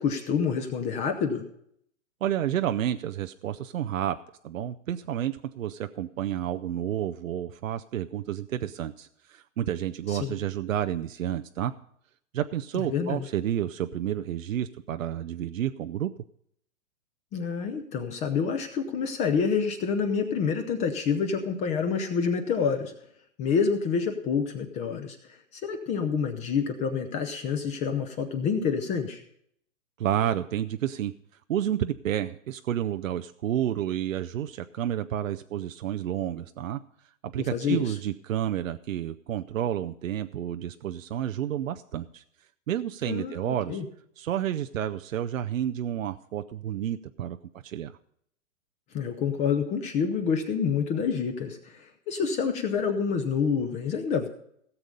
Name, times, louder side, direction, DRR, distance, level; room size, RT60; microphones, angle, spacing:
voice 1, 0.0-1.4 10.1-10.4 12.7-13.3 17.3-22.9 23.4-29.2 37.4-37.9 43.1-43.9 48.9-54.3, left 6 dB, 20° left, 7 dB, 0.6 m, -28 dB
voice 2, 2.2-4.2 4.4-11.7 12.3-16.1 30.0-31.1 31.5-36.8 37.3-42.2 42.7-43.8 44.2-48.0, right 11 dB, 85° right, 8 dB, 0.6 m, -30 dB
17.0 x 7.0 x 5.2 m, 0.69 s
hypercardioid pair, 140°, 39 cm